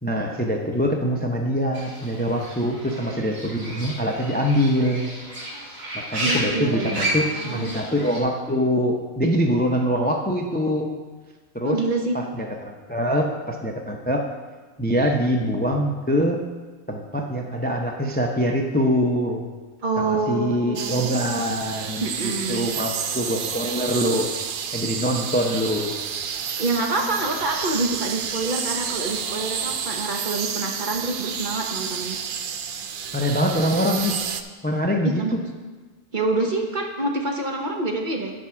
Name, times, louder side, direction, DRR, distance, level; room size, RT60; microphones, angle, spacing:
voice 1, 0.0-5.1 5.9-10.9 11.5-11.8 12.1-14.2 14.8-16.4 16.9-19.5 20.0-24.3 24.7-25.9 33.1-34.2 34.6-35.4, equal, 15° left, 2 dB, 0.3 m, -24 dB
Fowl / Bird, 1.7-8.2, right 1 dB, 85° right, 2.5 m, -32 dB
voice 2, 6.2-7.8 11.6-12.2 19.8-21.0 22.0-22.8 26.6-32.2 35.0-35.4 36.1-38.3, right 2 dB, 40° right, 2 dB, 1.0 m, -26 dB
sound 1, 20.7-34.4, right 7 dB, 65° right, 0.5 m, -30 dB
10.0 x 4.7 x 5.9 m, 1.3 s
omnidirectional pair, 1.4 m